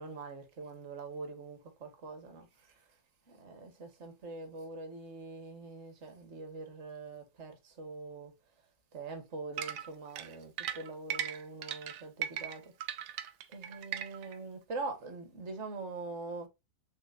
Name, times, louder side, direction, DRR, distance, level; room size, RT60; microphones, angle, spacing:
voice 1, 0.0-2.5 3.3-8.3 8.9-12.7 13.5-16.5, right 3 dB, 45° right, 1.3 m, -43 dB
sound 1, 9.6-14.4, right 10 dB, 90° right, 1.2 m, -38 dB
4.5 x 3.6 x 2.4 m
omnidirectional pair, 1.8 m